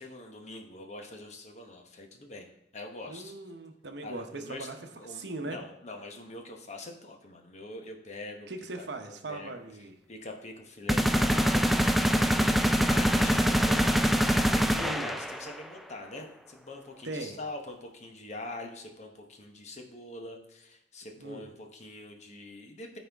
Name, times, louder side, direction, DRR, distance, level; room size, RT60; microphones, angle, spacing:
voice 1, 0.0-3.3 4.0-8.5 8.8-8.9 9.3-9.6 10.1-23.0, left 2 dB, 40° left, 3 dB, 1.0 m, -44 dB
voice 2, 3.1-4.8 5.1-5.6 8.5-10.0 14.8-15.2 17.0-17.4 21.2-21.5, right 2 dB, 65° right, 6 dB, 0.9 m, -39 dB
sound 1, 10.9-15.6, equal, ahead, 0.3 m, -24 dB
13.0 x 4.3 x 3.5 m, 0.87 s
head